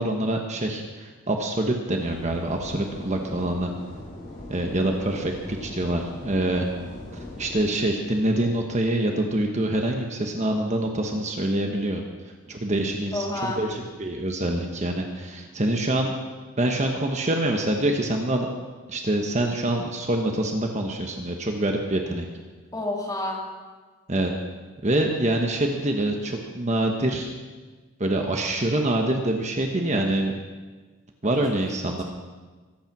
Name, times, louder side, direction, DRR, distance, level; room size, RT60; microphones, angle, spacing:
voice 1, 0.0-3.7 4.5-6.7 7.1-16.1 16.6-18.5 18.9-22.3 24.1-24.3 24.8-27.3 28.0-30.3 31.2-32.0, right 1 dB, 30° right, 2 dB, 1.2 m, -25 dB
sound 1, 1.9-7.7, left 1 dB, 40° left, 6.9 m, -40 dB
voice 2, 13.1-13.6 22.7-23.4 31.7-32.0, left 2 dB, 15° left, -2 dB, 3.0 m, -30 dB
23.5 x 9.0 x 6.1 m, 1.4 s
head